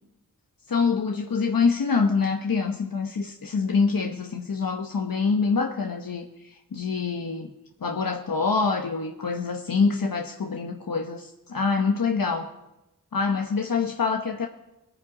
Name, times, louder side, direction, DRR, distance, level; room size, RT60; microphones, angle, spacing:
voice 1, 0.7-7.5 7.8-12.5 13.1-14.5, left 5 dB, 75° left, 3 dB, 1.0 m, -25 dB
21.5 x 9.0 x 4.9 m, 0.95 s
wide cardioid pair, 60°, 35 cm